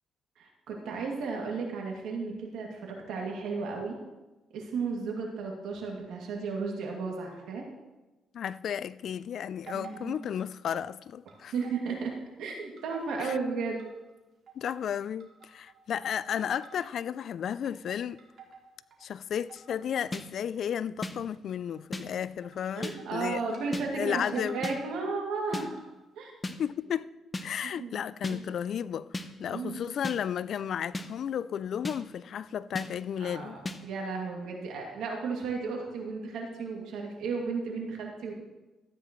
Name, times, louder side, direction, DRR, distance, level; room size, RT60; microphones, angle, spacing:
voice 1, 0.4-4.0 4.5-7.6 9.7-10.2 11.5-12.1 12.4-13.8 22.7-25.7 26.2-26.3 27.8-28.0 28.3-28.5 29.5-29.8 33.2-38.3, right 4 dB, 85° right, 2.4 m, -34 dB
voice 2, 8.3-11.5 13.2-13.4 14.6-18.2 19.0-23.6 23.9-24.6 26.6-27.1 27.4-33.6, left 8 dB, 65° left, 0.3 m, -33 dB
sound 1, 9.7-10.9 11.3-12.2 12.5-14.1 14.5-14.9 15.2-15.9 16.3-17.1 17.4-19.1 19.5-20.1 20.4-20.7 21.5-21.8 22.4-23.6 23.9-24.0 24.4-24.9 25.4-26.0, right 6 dB, 60° right, 2.2 m, -51 dB
sound 2, 20.1-20.2 21.0-21.1 21.9-22.0 22.8-23.0 23.7-23.9 24.6-24.8 25.5-25.7 26.4-26.6 27.3-27.5 28.2-28.4 29.1-29.3 30.0-30.2 30.9-31.1 31.8-32.0 32.8-32.9 33.7-33.8, left 2 dB, 20° left, 0.8 m, -34 dB
14.0 x 9.3 x 3.1 m
cardioid pair, 90°, 0 cm